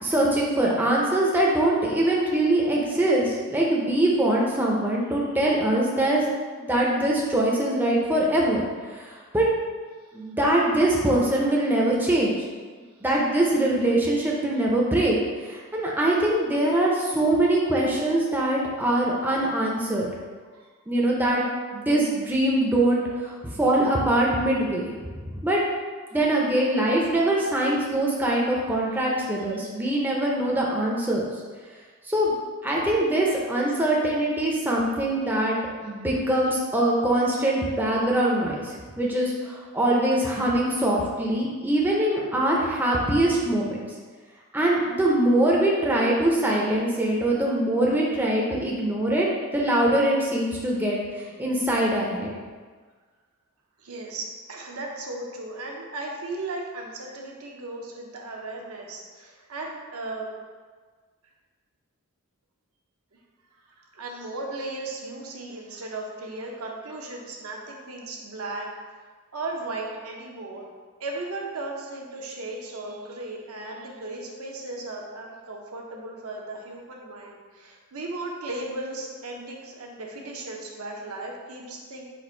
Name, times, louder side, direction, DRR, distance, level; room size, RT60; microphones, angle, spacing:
voice 1, 0.0-6.2 6.6-9.5 10.1-12.3 13.0-15.2 15.4-20.1 20.9-21.4 21.7-24.9 25.4-25.6 26.1-31.2 32.0-32.3 32.6-35.6 35.8-43.8 44.5-49.3 49.5-52.3, right 1 dB, 10° right, -3 dB, 0.5 m, -23 dB
voice 2, 53.8-60.3 63.7-68.7 69.3-70.7 71.0-82.1, right 2 dB, 75° right, -1 dB, 0.7 m, -36 dB
4.2 x 2.5 x 4.3 m, 1.5 s
head